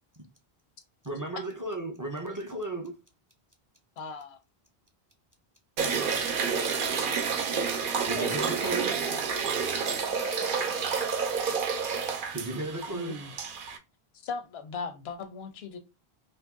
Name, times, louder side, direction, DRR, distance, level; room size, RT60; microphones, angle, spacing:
voice 1, 1.0-3.0 8.1-8.9 12.3-13.2, right 2 dB, 30° right, 0.4 m, -34 dB
voice 2, 4.0-4.4 12.9-13.3 14.2-15.8, left 4 dB, 80° left, 0.9 m, -38 dB
sound 1, 5.8-13.8, right 6 dB, 60° right, 0.7 m, -29 dB
voice 3, 8.1-11.0, left 1 dB, 50° left, 0.4 m, -42 dB
2.8 x 2.6 x 3.5 m
omnidirectional pair, 1.0 m